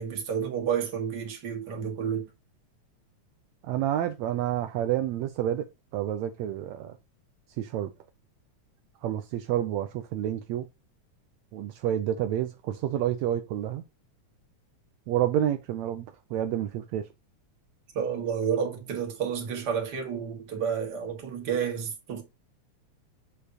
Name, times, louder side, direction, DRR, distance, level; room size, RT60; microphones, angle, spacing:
voice 1, 0.0-2.3 17.9-22.2, right 7 dB, 40° right, 2.0 m, -30 dB
voice 2, 3.6-5.6 5.9-7.0 7.6-7.9 9.0-10.7 11.5-13.8 15.1-16.1 16.3-17.0, right 11 dB, 80° right, 1.8 m, -29 dB
7.3 x 6.5 x 2.9 m
omnidirectional pair, 3.4 m